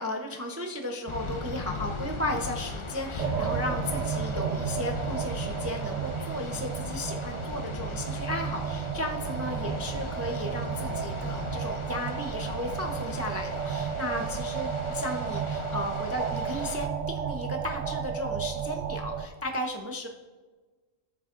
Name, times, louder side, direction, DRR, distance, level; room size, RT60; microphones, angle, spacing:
voice 1, 0.0-20.1, left 1 dB, 20° right, 3 dB, 0.4 m, -35 dB
sound 1, 1.1-16.9, left 3 dB, 35° left, 0.5 m, -38 dB
sound 2, 3.2-19.3, right 7 dB, 85° right, 0.4 m, -33 dB
17.5 x 7.3 x 2.5 m, 1.3 s
omnidirectional pair, 1.3 m